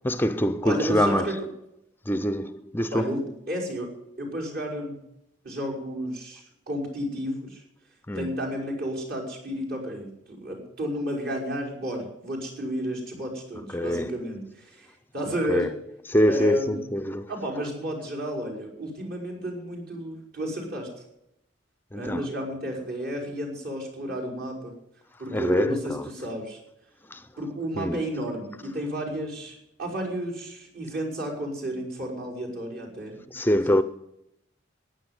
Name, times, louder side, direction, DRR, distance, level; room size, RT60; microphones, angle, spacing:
voice 1, 0.0-1.4 2.1-3.2 8.1-8.4 13.7-14.1 15.5-15.7 16.1-17.3 21.9-22.3 25.3-26.1 27.1-27.3 27.8-28.0 33.3-33.8, equal, 10° left, 0.5 m, -25 dB
voice 2, 0.6-1.4 2.9-3.2 3.5-3.9 4.2-5.0 5.4-7.6 8.1-14.9 15.1-15.7 16.3-16.9 17.3-20.9 21.9-24.7 25.2-26.6 27.4-33.2 33.7-33.8, equal, 55° right, 5.6 m, -32 dB
15.0 x 10.0 x 8.0 m
head